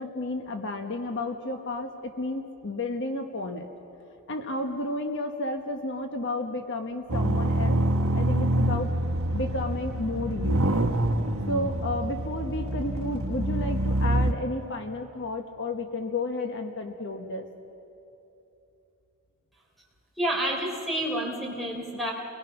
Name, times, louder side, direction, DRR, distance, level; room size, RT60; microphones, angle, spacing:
voice 1, 0.0-3.7 4.3-7.8 8.1-8.9 9.3-10.7 11.5-17.5, left 2 dB, 55° left, 4 dB, 1.2 m, -32 dB
sound 1, 7.1-14.3, right 1 dB, 70° right, 1.3 m, -26 dB
voice 2, 20.2-22.1, right 1 dB, ahead, -1 dB, 3.6 m, -29 dB
29.5 x 20.5 x 6.0 m, 2.9 s
head